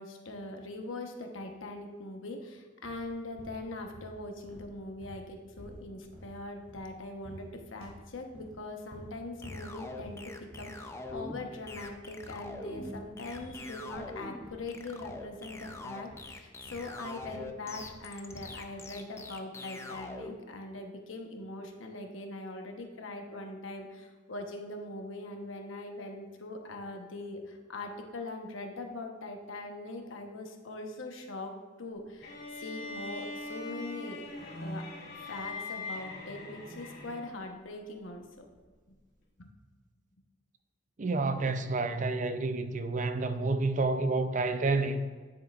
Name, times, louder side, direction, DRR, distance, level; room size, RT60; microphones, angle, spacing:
voice 1, 0.0-31.5 31.8-34.2 34.6-34.8 35.3-38.5 39.4-39.5, left 2 dB, 85° left, 1.0 m, -42 dB
sound 1, 2.8-3.1 3.4-4.2 4.5-7.0 7.2-7.5 7.8-8.6 8.9-9.2 9.4-9.7 10.0-10.3 10.5-10.8 11.1-11.4 11.6-11.9 12.2-13.0 13.3-14.2 14.4-14.7 15.0-15.3 15.6-17.5 17.8-18.0 18.3-18.6, equal, 75° right, 2.4 m, -50 dB
sound 2, 9.4-20.3, left 2 dB, 15° left, 0.4 m, -43 dB
sound 3, 32.2-37.5, left 2 dB, 55° left, 2.3 m, -41 dB
voice 2, 41.0-45.0, right 3 dB, 40° right, 0.5 m, -29 dB
9.6 x 7.9 x 2.4 m
head